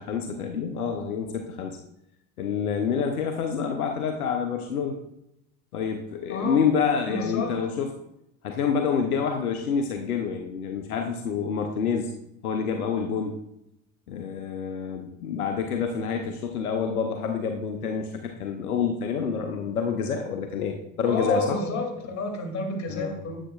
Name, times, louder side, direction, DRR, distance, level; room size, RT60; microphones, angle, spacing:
voice 1, 0.0-1.8 2.4-5.0 5.7-7.9 8.4-12.1 12.4-13.4 14.1-21.6 22.9-23.2, left 6 dB, 85° left, 4 dB, 0.8 m, -27 dB
voice 2, 6.3-6.6 7.1-7.7 21.1-23.4, left 2 dB, 40° left, 2 dB, 2.5 m, -30 dB
9.9 x 8.2 x 2.3 m, 0.82 s
hypercardioid pair, 70°, 43 cm